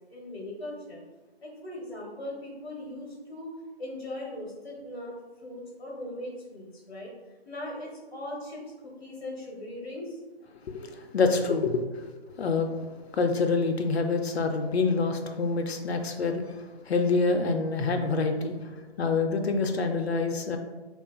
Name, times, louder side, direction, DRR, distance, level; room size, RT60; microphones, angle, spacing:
voice 1, 0.1-1.0 1.4-3.5 3.8-5.1 5.4-10.2 11.4-11.5, left 1 dB, 55° left, -1 dB, 0.8 m, -39 dB
voice 2, 10.7-12.0 12.4-12.7 13.1-20.6, left 4 dB, 80° left, 5 dB, 0.5 m, -27 dB
5.3 x 2.4 x 2.3 m, 1.3 s
figure-of-eight pair, 160°, 31 cm